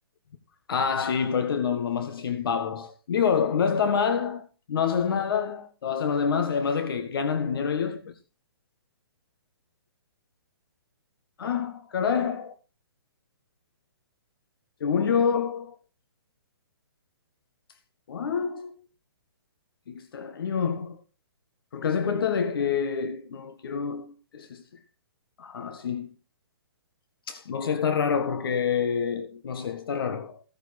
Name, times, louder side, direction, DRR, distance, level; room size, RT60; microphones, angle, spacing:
voice 1, 0.7-8.1 11.4-12.5 14.8-15.8 18.1-18.7 19.9-21.0 21.7-24.6 25.4-26.1 27.3-30.4, left 6 dB, 60° left, 1.7 m, -27 dB
15.5 x 9.5 x 4.4 m
hypercardioid pair, 150°, 13 cm